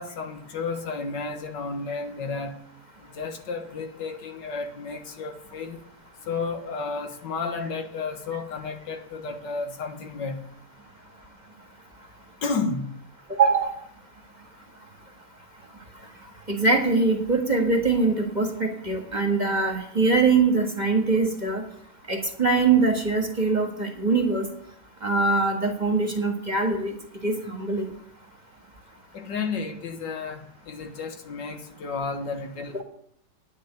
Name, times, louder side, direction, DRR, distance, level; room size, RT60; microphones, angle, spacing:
voice 1, 0.0-2.5 3.2-5.8 6.3-10.4 12.4-12.9 29.1-32.8, left 4 dB, 75° left, 6 dB, 2.0 m, -32 dB
voice 2, 13.3-13.7 16.5-21.6 22.1-24.5 25.0-26.9 27.2-27.9 32.7-32.8, right 4 dB, 25° right, 3 dB, 1.6 m, -23 dB
9.7 x 6.9 x 8.9 m, 0.68 s
omnidirectional pair, 1.9 m